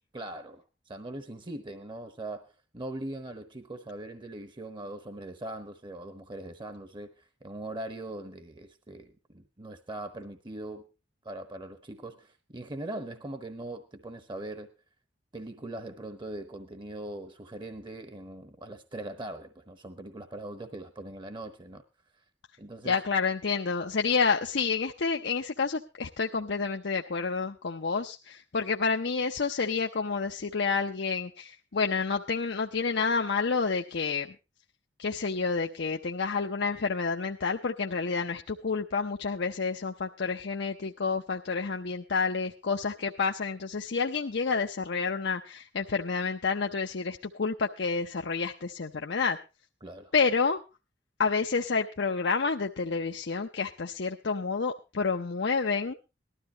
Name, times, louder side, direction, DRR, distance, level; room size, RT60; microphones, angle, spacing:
voice 1, 0.1-10.9 11.2-14.7 15.3-21.8 22.6-23.0 49.8-50.1, right 1 dB, 25° right, 1.0 m, -41 dB
voice 2, 22.8-34.3 35.0-49.4 50.1-50.6 51.2-55.9, left 4 dB, 65° left, 0.7 m, -29 dB
19.0 x 13.0 x 2.9 m
head